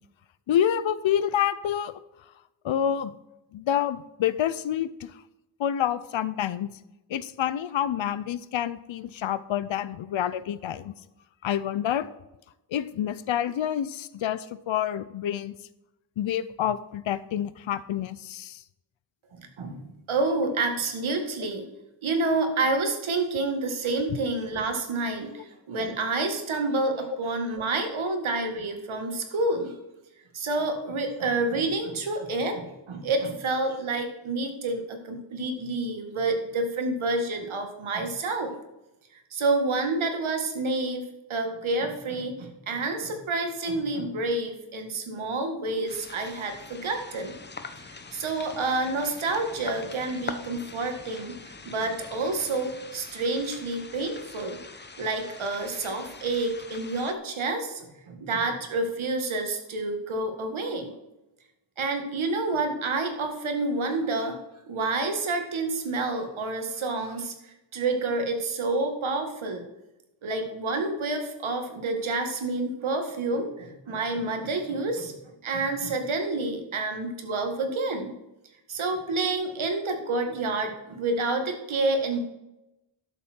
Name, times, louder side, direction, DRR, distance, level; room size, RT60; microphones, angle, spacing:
voice 1, 0.5-1.9 2.6-3.1 3.5-5.1 5.6-6.7 7.1-10.9 11.4-12.1 12.7-15.6 16.2-18.6 24.1-24.2, left 10 dB, 75° left, 16 dB, 0.7 m, -28 dB
voice 2, 19.4-21.6 22.0-29.7 30.3-38.5 39.3-47.3 48.1-51.4 51.7-54.6 55.0-60.9 61.8-64.4 64.7-67.3 67.7-69.6 70.2-75.1 75.4-78.2 78.7-82.2, right 3 dB, 85° right, 5 dB, 1.9 m, -28 dB
sound 1, 45.9-57.1, left 4 dB, 25° left, 0.7 m, -43 dB
12.0 x 6.9 x 4.5 m, 0.94 s
wide cardioid pair, 160°, 47 cm